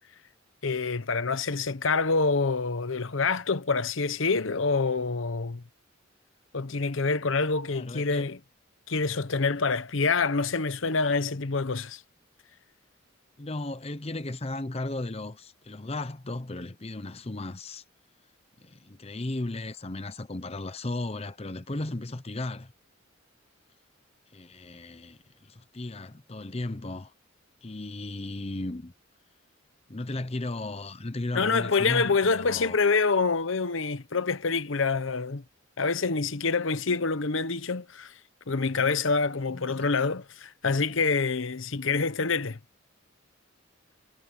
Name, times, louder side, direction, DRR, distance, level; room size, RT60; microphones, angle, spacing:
voice 1, 0.6-5.6 6.5-8.4 8.9-12.0 31.3-35.4 35.8-38.1 38.5-42.6, left 4 dB, 70° left, 0.9 m, -26 dB
voice 2, 7.7-8.3 13.4-17.8 18.6-22.7 24.3-27.1 27.6-28.9 29.9-32.8 39.5-39.9, left 2 dB, 30° left, 0.8 m, -35 dB
head